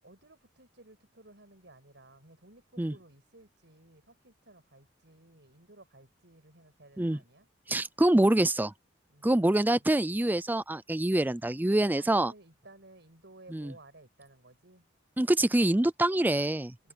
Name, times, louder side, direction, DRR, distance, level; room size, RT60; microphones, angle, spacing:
voice 1, 0.0-7.5 9.1-10.0 11.7-14.9 16.8-16.9, right 2 dB, 65° right, 8.0 m, -56 dB
voice 2, 7.7-8.7 9.2-12.3 13.5-13.7 15.2-16.7, right 1 dB, 10° right, 0.4 m, -25 dB
head